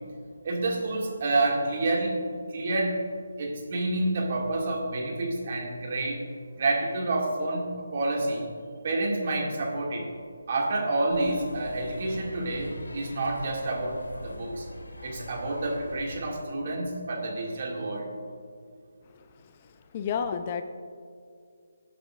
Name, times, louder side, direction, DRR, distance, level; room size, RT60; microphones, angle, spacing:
voice 1, 0.4-2.2 2.5-3.0 3.4-6.2 6.6-8.5 8.8-10.1 10.5-14.6 15.0-18.1, right 2 dB, 45° right, -1 dB, 2.2 m, -28 dB
sound 1, 11.1-16.2, left 1 dB, 90° left, 1.9 m, -43 dB
voice 2, 19.0-20.6, left 7 dB, 30° left, 8 dB, 0.6 m, -33 dB
19.5 x 8.2 x 2.5 m, 2.3 s
figure-of-eight pair, 160°, 0 cm